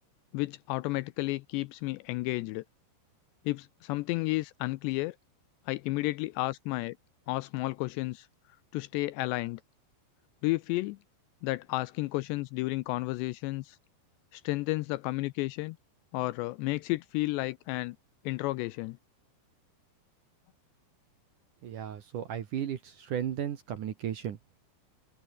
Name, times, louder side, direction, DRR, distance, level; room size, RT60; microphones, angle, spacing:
voice 1, 0.3-2.6 3.5-5.2 5.7-7.0 7.3-8.3 8.7-9.6 10.4-11.0 11.4-13.8 14.3-15.8 16.1-18.0 18.3-19.0, left 20 dB, 80° left, 2.6 m, -32 dB
voice 2, 21.6-24.6, right 9 dB, 60° right, 2.4 m, -35 dB
omnidirectional pair, 5.3 m